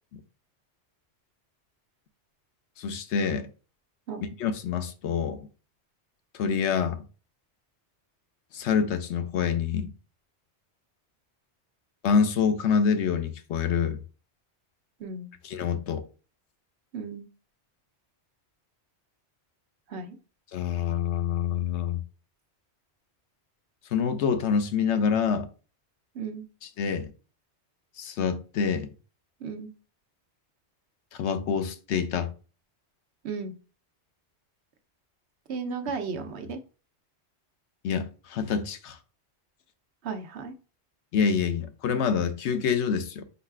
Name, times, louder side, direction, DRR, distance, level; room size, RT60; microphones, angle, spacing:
voice 1, 2.8-3.5 4.4-5.5 6.3-7.0 8.5-9.9 12.0-14.0 15.4-16.0 20.5-22.0 23.9-25.5 26.6-27.1 28.0-28.9 31.1-32.3 37.8-39.0 41.1-43.2, left 6 dB, 85° left, 0.9 m, -26 dB
voice 2, 15.0-15.3 16.9-17.2 19.9-20.2 26.1-26.4 29.4-29.7 33.2-33.5 35.5-36.6 40.0-40.5, right 5 dB, 75° right, 0.9 m, -34 dB
5.4 x 4.0 x 2.3 m
omnidirectional pair, 1.2 m